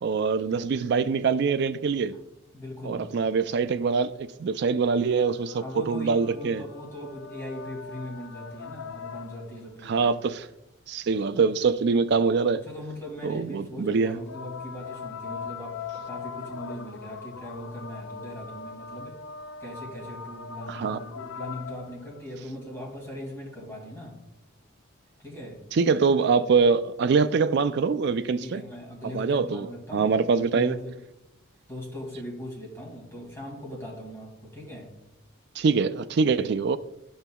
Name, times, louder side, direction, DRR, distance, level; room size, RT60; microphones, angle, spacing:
voice 1, 0.0-2.1 2.9-6.6 9.9-10.5 10.9-12.6 13.2-14.2 20.7-21.0 25.7-28.6 29.1-29.7 29.9-30.8 35.6-36.8, right 5 dB, 50° right, 0.3 m, -24 dB
voice 2, 2.5-3.1 5.6-9.9 12.5-19.2 19.6-24.2 25.2-25.6 28.4-30.9 31.7-34.9, left 1 dB, 10° left, 2.2 m, -40 dB
sound 1, 5.0-9.7 14.1-22.3 23.6-23.7, left 5 dB, 65° left, 0.4 m, -41 dB
12.0 x 5.4 x 2.3 m
head